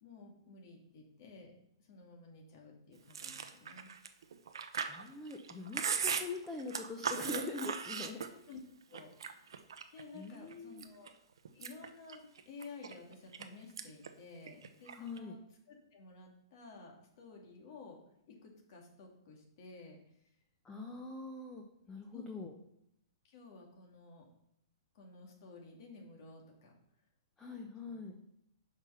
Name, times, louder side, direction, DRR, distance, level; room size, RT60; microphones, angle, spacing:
voice 1, 0.0-1.5 1.9-3.9 8.5-8.6 8.9-9.5 9.9-11.1 11.5-18.0 18.3-20.3 22.1-22.2 23.2-24.3 24.9-26.7 27.9-28.0, left 3 dB, 55° left, 1 dB, 2.3 m, -53 dB
Chewing mastication, 3.1-8.6 8.9-10.0 10.5-11.1 11.4-13.4 13.8-14.1 14.4-15.2, right 6 dB, 75° right, 0.7 m, -38 dB
voice 2, 4.8-8.3 10.1-10.8 14.9-15.4 20.6-22.5 27.4-28.2, left 3 dB, 15° left, 1 dB, 0.9 m, -43 dB
6.2 x 5.0 x 5.7 m, 0.77 s
hypercardioid pair, 125°, 2 cm